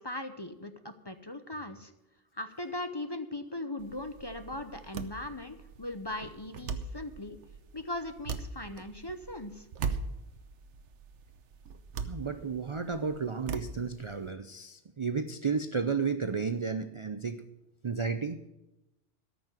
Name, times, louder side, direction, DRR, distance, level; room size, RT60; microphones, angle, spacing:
voice 1, 0.0-1.9 2.3-7.4 7.7-9.7, left 1 dB, 25° left, 8 dB, 0.7 m, -39 dB
sound 1, 3.8-14.3, right 5 dB, 75° right, 1.2 m, -41 dB
voice 2, 12.0-17.5 17.8-18.4, right 5 dB, 40° right, 10 dB, 0.4 m, -32 dB
13.5 x 6.2 x 9.0 m, 0.95 s
omnidirectional pair, 1.2 m